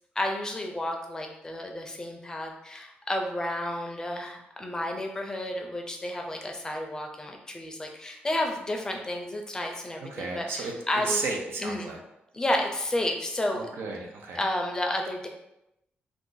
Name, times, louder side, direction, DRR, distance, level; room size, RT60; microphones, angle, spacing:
voice 1, 0.2-11.2 11.6-11.9 12.3-13.7 14.4-15.3, left 1 dB, 15° left, 2 dB, 0.5 m, -31 dB
voice 2, 10.0-10.7 11.0-12.0 13.5-14.4, right 3 dB, 90° right, 0 dB, 0.6 m, -33 dB
2.6 x 2.5 x 3.7 m, 0.85 s
wide cardioid pair, 130°, 4 cm